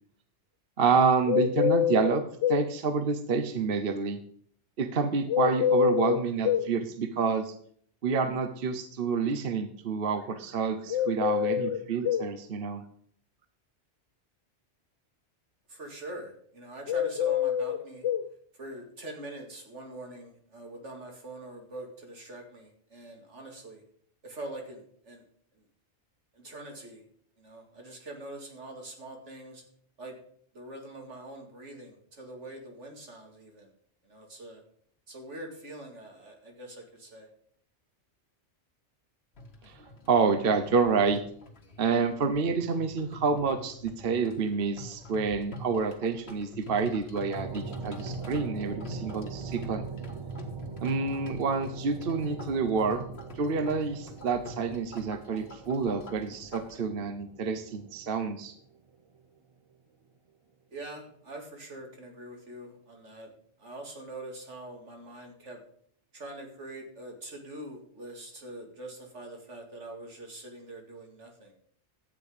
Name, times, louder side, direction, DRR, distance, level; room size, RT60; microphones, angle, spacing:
voice 1, 0.8-2.2 2.5-4.2 4.8-7.5 8.0-12.8 39.6-39.8 40.1-41.2 41.8-49.8 50.8-53.0 53.4-58.5, right 5 dB, 55° right, 9 dB, 1.0 m, -28 dB
sound 1, 1.3-2.7 5.3-6.7 10.9-12.3 16.9-18.3, left 9 dB, 80° left, 0.9 m, -26 dB
voice 2, 15.7-18.0 18.5-23.8 24.2-25.2 25.5-25.6 26.3-27.0 27.4-29.6 30.0-30.2 30.5-33.7 34.0-34.6 35.1-37.3 60.7-63.3 63.6-65.6 66.1-71.5, right 1 dB, 80° right, 2 dB, 2.6 m, -44 dB
sound 2, 39.3-56.8, left 1 dB, 60° left, 1.8 m, -46 dB
sound 3, 47.4-59.2, right 5 dB, 35° right, 0.6 m, -42 dB
12.0 x 8.3 x 5.0 m, 0.62 s
omnidirectional pair, 1.2 m